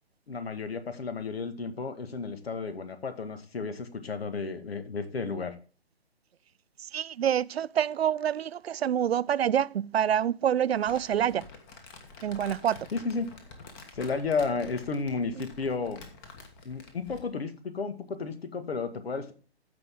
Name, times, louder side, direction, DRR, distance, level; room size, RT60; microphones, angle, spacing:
voice 1, 0.3-5.5 12.9-13.3 13.9-16.0 16.6-19.3, left 4 dB, 65° left, 2.0 m, -33 dB
voice 2, 6.9-11.4 12.2-12.9, right 9 dB, 70° right, 0.5 m, -27 dB
Crumpling crinkling, 10.7-17.3, left 4 dB, 20° left, 1.5 m, -48 dB
14.5 x 5.5 x 3.7 m
hypercardioid pair, 145°, 32 cm